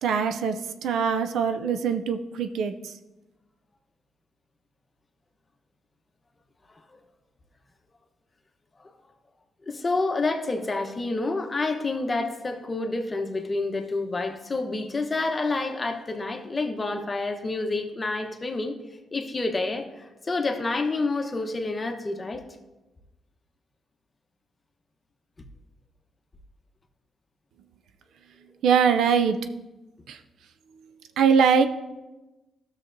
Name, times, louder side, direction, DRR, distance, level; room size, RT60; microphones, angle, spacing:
voice 1, 0.0-2.9 28.6-29.4 30.1-30.2 31.2-31.7, right 6 dB, 80° right, 8 dB, 0.5 m, -22 dB
voice 2, 9.7-18.8 19.1-22.4, left 3 dB, 30° left, 5 dB, 1.0 m, -28 dB
12.5 x 6.5 x 2.6 m, 1.1 s
cardioid pair, 70°, 0 cm